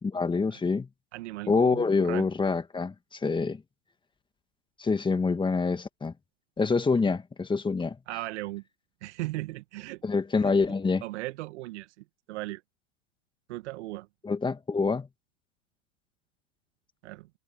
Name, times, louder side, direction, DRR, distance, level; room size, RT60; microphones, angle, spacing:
voice 1, 0.0-0.9 1.5-3.6 4.8-6.1 6.6-8.0 10.0-11.0 14.2-15.1, left 4 dB, 10° left, 2.0 m, -26 dB
voice 2, 1.1-2.3 8.1-8.6 9.0-10.0 11.0-12.6 13.5-14.1 17.0-17.3, right 18 dB, 60° right, 1.9 m, -37 dB
hypercardioid pair, 105°, 38 cm